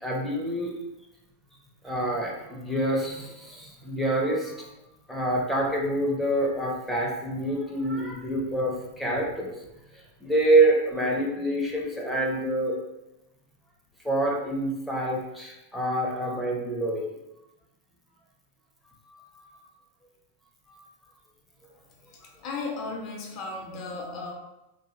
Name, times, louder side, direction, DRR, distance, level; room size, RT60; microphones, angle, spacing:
voice 1, 0.0-0.7 1.8-4.7 5.1-9.5 10.2-12.8 14.0-17.1 19.1-19.4 20.7-20.9, right 1 dB, ahead, -3 dB, 0.6 m, -26 dB
voice 2, 22.0-24.3, left 3 dB, 40° left, 1 dB, 0.5 m, -35 dB
2.8 x 2.3 x 3.1 m, 0.93 s
figure-of-eight pair, 90°, 0 cm